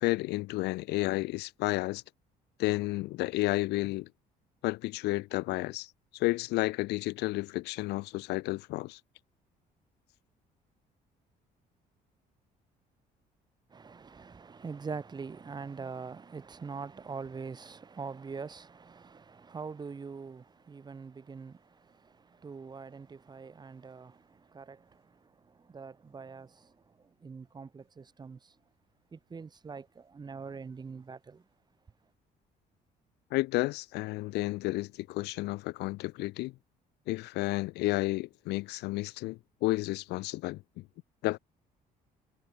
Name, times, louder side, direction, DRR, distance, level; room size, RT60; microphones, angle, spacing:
voice 1, 0.0-2.0 2.6-4.1 4.6-9.0 33.3-36.5 37.1-40.8 41.2-41.4, left 20 dB, 80° left, 0.5 m, -31 dB
voice 2, 13.7-28.6 29.1-31.5, right 5 dB, 25° right, 1.1 m, -44 dB
cardioid pair, 110°, 17 cm